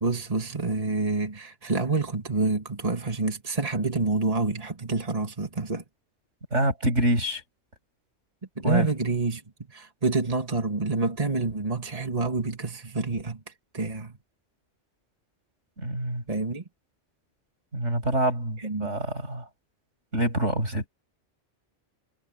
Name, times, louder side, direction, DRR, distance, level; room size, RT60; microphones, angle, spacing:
voice 1, 0.0-5.8 8.6-9.4 9.7-13.4 13.7-14.2 16.3-16.6 18.6-18.9, right 3 dB, 30° right, 2.4 m, -27 dB
voice 2, 6.5-7.4 8.6-8.9 15.8-16.2 17.7-19.5 20.1-20.9, right 1 dB, 90° right, 7.3 m, -26 dB
omnidirectional pair, 1.2 m